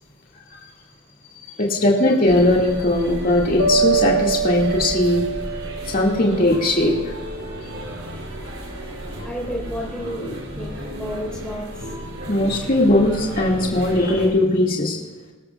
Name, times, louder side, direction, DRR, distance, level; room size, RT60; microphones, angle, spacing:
voice 1, 1.6-5.2 5.9-7.1 12.3-15.0, left 1 dB, 45° left, -2 dB, 2.3 m, -19 dB
sound 1, 2.2-14.3, equal, 80° right, 3.6 m, -34 dB
sound 2, 3.6-6.7, right 5 dB, 60° right, 3.9 m, -24 dB
voice 2, 9.2-11.9, equal, 5° left, -3 dB, 4.5 m, -32 dB
23.0 x 13.0 x 2.5 m, 1.3 s
head